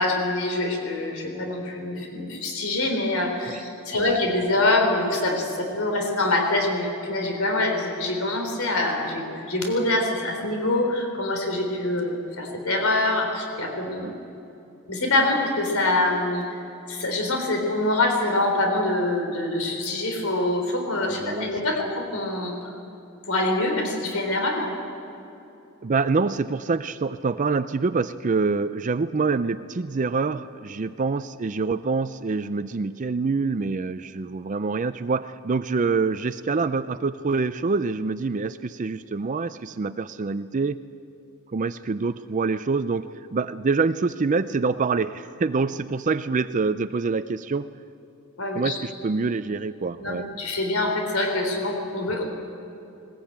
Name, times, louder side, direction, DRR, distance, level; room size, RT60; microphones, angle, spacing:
voice 1, 0.0-14.1 14.9-16.6 16.9-22.5 23.3-24.7 48.4-48.8 50.0-52.2, left 2 dB, 75° left, 3 dB, 3.6 m, -25 dB
voice 2, 21.1-21.5 25.8-40.8 41.5-47.7 48.5-50.3, right 4 dB, 35° right, 12 dB, 0.4 m, -26 dB
20.5 x 20.0 x 8.8 m, 2.9 s
head